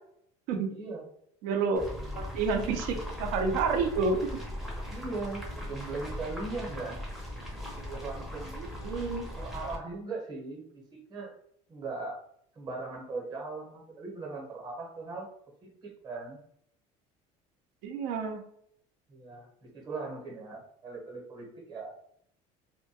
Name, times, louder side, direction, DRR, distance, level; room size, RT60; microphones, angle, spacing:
voice 1, 0.7-1.1 1.8-2.2 4.9-7.0 7.8-8.6 9.4-11.3 11.7-12.2 12.5-15.3 15.6-16.4 19.1-22.0, right 3 dB, 30° right, -1 dB, 0.8 m, -39 dB
voice 2, 1.4-1.9 2.2-4.2 8.6-9.3 17.8-18.4, right 4 dB, 75° right, 5 dB, 0.5 m, -29 dB
sound 1, 1.8-9.8, left 1 dB, ahead, 0.5 m, -39 dB
2.2 x 2.1 x 2.7 m, 0.69 s
cardioid pair, 150°, 15 cm